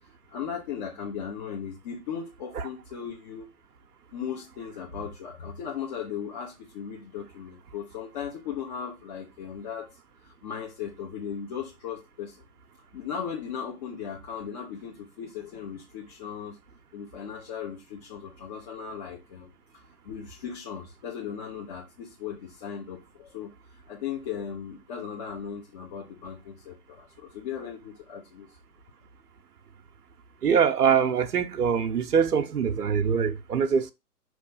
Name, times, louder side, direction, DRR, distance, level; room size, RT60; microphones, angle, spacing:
voice 1, 0.3-3.5 4.1-9.9 10.2-12.4 12.9-16.6 16.9-28.5, left 7 dB, 30° left, 1.0 m, -37 dB
voice 2, 30.4-33.9, right 7 dB, 80° right, 0.8 m, -23 dB
5.8 x 3.1 x 5.4 m
hypercardioid pair, 135°, 46 cm